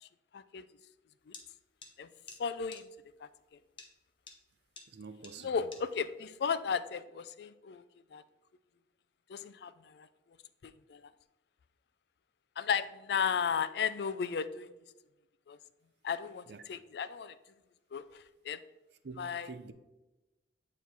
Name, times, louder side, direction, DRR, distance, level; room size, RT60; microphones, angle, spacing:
voice 1, 0.3-0.7 1.3-1.4 2.0-2.1 2.4-2.9 3.2-3.3 5.4-7.8 8.1-8.2 9.3-10.1 10.6-11.0 12.6-14.7 15.5-15.6 16.0-17.4 17.9-18.6 19.2-19.5, left 6 dB, 60° left, 0.3 m, -35 dB
sound 1, 1.3-1.4 1.8-1.9 2.3-2.4 2.7-2.8 3.8-3.9 4.3-4.4 4.8-4.9 5.2-5.3 5.7-5.8, left 4 dB, 30° left, 0.8 m, -48 dB
voice 2, 4.9-5.8 16.5-16.6 19.0-19.7, right 4 dB, 65° right, 0.5 m, -47 dB
9.1 x 3.1 x 4.1 m
head